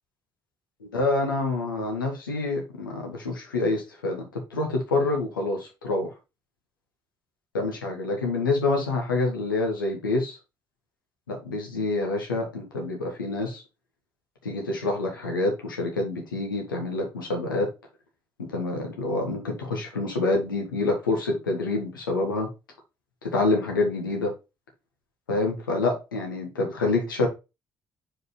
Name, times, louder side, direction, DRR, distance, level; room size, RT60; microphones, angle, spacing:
voice 1, 0.8-6.1 7.5-10.4 11.3-13.6 14.4-17.7 18.5-22.5 23.2-24.3 25.3-27.3, left 2 dB, 85° left, 1 dB, 1.4 m, -27 dB
4.9 x 4.8 x 4.1 m, 0.26 s
figure-of-eight pair, 45°, 11 cm